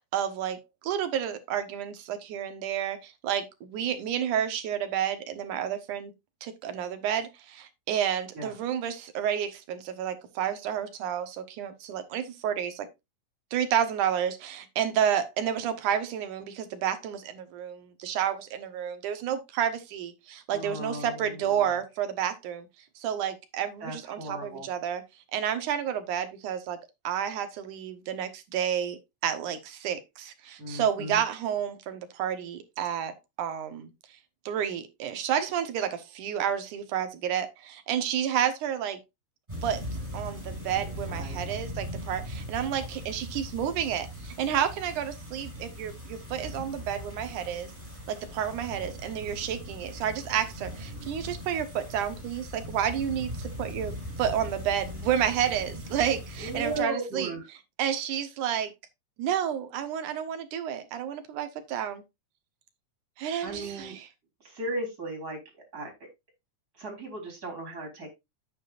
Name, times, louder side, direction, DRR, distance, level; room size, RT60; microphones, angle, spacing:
voice 1, 0.1-0.6 0.8-6.1 6.4-12.9 13.5-22.7 23.0-25.0 25.3-26.8 27.0-33.9 34.5-39.0 39.6-39.8 40.1-47.7 48.1-57.3 57.8-58.7 59.2-62.0 63.2-64.1, right 9 dB, 80° right, 2.7 m, -30 dB
voice 2, 20.5-21.7 23.8-24.7 30.6-31.2 41.1-41.4 56.4-57.5 63.4-64.0 64.4-65.4 65.7-66.1 66.8-68.1, right 2 dB, 30° right, 4.2 m, -36 dB
sound 1, 39.5-56.8, equal, 10° right, 5.6 m, -39 dB
9.6 x 8.7 x 2.5 m
omnidirectional pair, 3.6 m